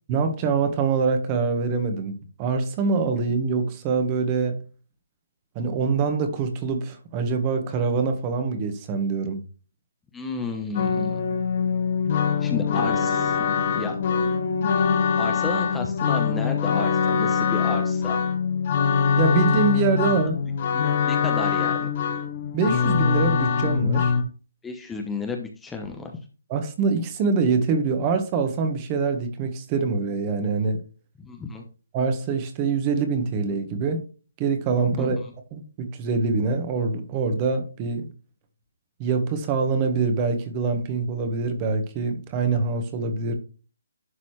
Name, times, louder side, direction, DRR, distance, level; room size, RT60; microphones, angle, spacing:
voice 1, 0.1-4.6 5.5-9.4 19.2-20.4 22.5-24.1 26.5-30.8 31.9-34.0 34.4-35.2 35.5-38.1 39.0-43.3, right 4 dB, 25° right, 1.4 m, -24 dB
voice 2, 10.1-11.2 12.4-13.4 13.7-14.0 15.2-18.2 20.7-21.9 24.6-26.1 31.2-31.6 34.9-35.3, left 4 dB, 10° left, 0.9 m, -32 dB
sound 1, 10.7-24.2, left 6 dB, 40° left, 1.2 m, -23 dB
11.0 x 4.1 x 3.2 m
hypercardioid pair, 150°, 0 cm